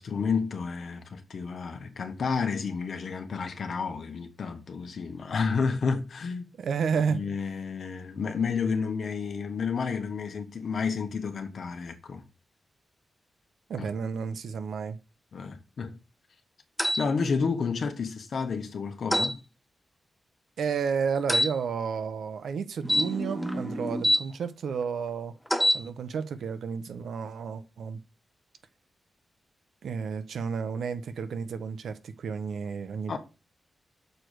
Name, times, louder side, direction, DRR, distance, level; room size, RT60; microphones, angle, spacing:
voice 1, 0.0-6.5 7.1-12.2 13.8-13.9 15.3-16.0 17.0-19.4 33.1-33.2, left 5 dB, 55° left, 1.2 m, -31 dB
voice 2, 6.6-7.2 13.7-15.0 20.6-25.3 25.7-28.0 29.8-33.2, right 6 dB, 80° right, 0.8 m, -31 dB
sound 1, 16.8-17.0 19.1-19.3 21.3-21.5 22.8-24.2 25.5-25.8, equal, ahead, 0.5 m, -25 dB
6.7 x 4.6 x 6.6 m
wide cardioid pair, 175°, 0 cm